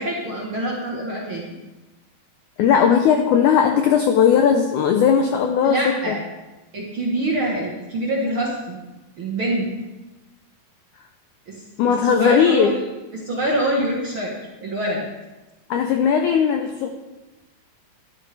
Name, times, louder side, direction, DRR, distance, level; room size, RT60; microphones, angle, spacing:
voice 1, 0.0-1.5 5.6-6.2 6.7-8.8 9.2-9.7 11.5-11.6 12.0-12.8 13.1-14.3 14.6-15.0, right 1 dB, 55° right, -3 dB, 1.5 m, -25 dB
voice 2, 2.6-6.2 11.8-12.7 15.7-16.9, left 7 dB, 90° left, 5 dB, 1.7 m, -17 dB
13.5 x 12.0 x 3.4 m, 1.1 s
omnidirectional pair, 4.4 m